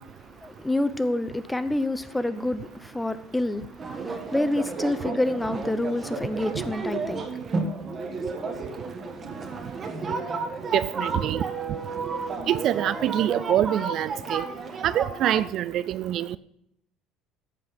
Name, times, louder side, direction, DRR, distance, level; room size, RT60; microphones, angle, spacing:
voice 1, 0.4-7.3 9.6-9.9, left 1 dB, 5° left, 0.7 m, -28 dB
sound 1, 3.8-15.5, right 4 dB, 25° right, 1.6 m, -32 dB
voice 2, 10.7-11.4 12.5-14.5 14.8-16.4, right 12 dB, 45° right, 0.3 m, -25 dB
14.0 x 8.2 x 5.3 m
cardioid pair, 160°, 0 cm